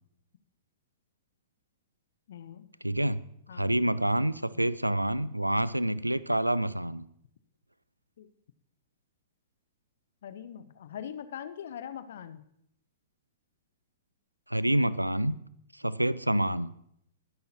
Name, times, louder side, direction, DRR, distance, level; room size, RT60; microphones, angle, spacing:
voice 1, 2.3-2.7 3.5-3.8 8.2-8.3 10.2-12.4, left 9 dB, 55° left, 13 dB, 0.8 m, -42 dB
voice 2, 2.8-3.2 3.5-7.0 14.5-15.4 15.8-16.7, right 1 dB, 85° right, 18 dB, 0.5 m, -27 dB
21.0 x 10.5 x 2.9 m, 0.71 s
figure-of-eight pair, 105°, 0 cm